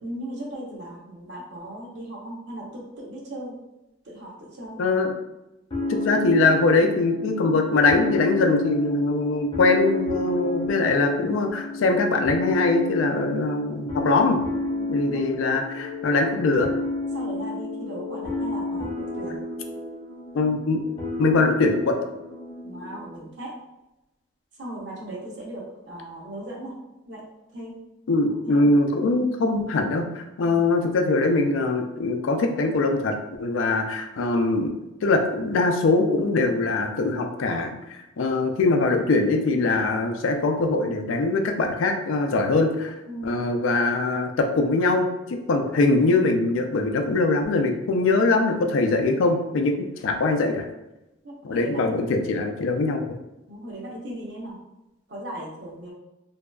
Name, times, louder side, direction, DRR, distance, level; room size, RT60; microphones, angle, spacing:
voice 1, 0.0-3.6 4.0-4.8 14.7-15.2 17.1-19.4 22.6-23.5 24.6-26.7 27.1-27.2 27.5-27.8 28.4-28.7 30.4-30.7 43.1-43.4 51.2-51.9 53.5-54.6 55.1-55.9, right 1 dB, 60° right, -3 dB, 0.7 m, -37 dB
voice 2, 4.8-5.1 5.9-14.4 14.9-16.7 20.3-20.8 21.2-22.0 28.1-34.7 35.0-42.9 43.2-50.6 51.4-53.2, left 3 dB, 80° left, 4 dB, 0.4 m, -22 dB
sound 1, 5.7-23.2, left 2 dB, 25° left, 0.5 m, -31 dB
2.6 x 2.3 x 2.2 m, 0.95 s
head